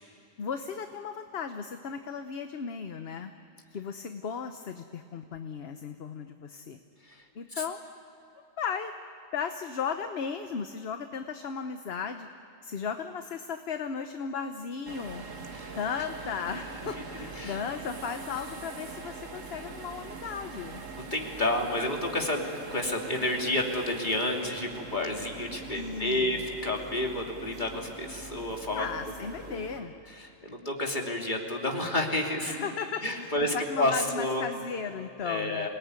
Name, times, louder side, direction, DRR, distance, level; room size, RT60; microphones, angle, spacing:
voice 1, 0.4-3.3 3.7-6.8 7.3-7.8 8.6-8.9 9.3-12.3 12.6-15.2 15.7-20.8 25.7-26.5 28.7-29.9 32.5-35.7, left 6 dB, 55° left, 7 dB, 1.1 m, -36 dB
sound 1, 14.9-29.8, right 4 dB, 85° right, 1.9 m, -43 dB
voice 2, 20.9-22.4 22.7-28.9 29.5-29.6 30.1-32.6 33.0-34.4 35.2-35.7, left 1 dB, 35° left, 0 dB, 3.0 m, -30 dB
27.5 x 19.0 x 9.6 m, 2.9 s
omnidirectional pair, 1.3 m